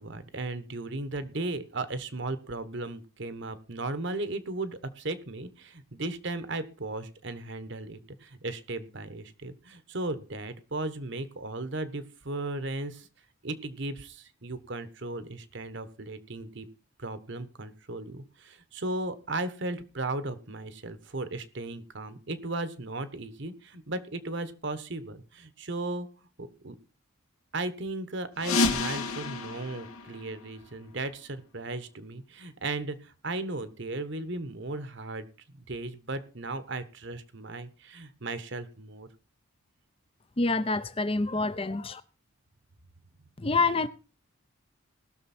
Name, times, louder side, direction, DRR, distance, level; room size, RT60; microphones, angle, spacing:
voice 1, 0.0-13.1 13.4-16.7 17.0-26.1 26.4-26.8 27.5-35.3 35.5-39.1, right 2 dB, 55° right, 1.2 m, -36 dB
sound 1, 28.4-31.0, left 3 dB, 85° left, 2.4 m, -30 dB
voice 2, 40.4-42.0 43.4-43.9, left 3 dB, 25° left, 0.7 m, -27 dB
19.5 x 6.7 x 4.3 m
head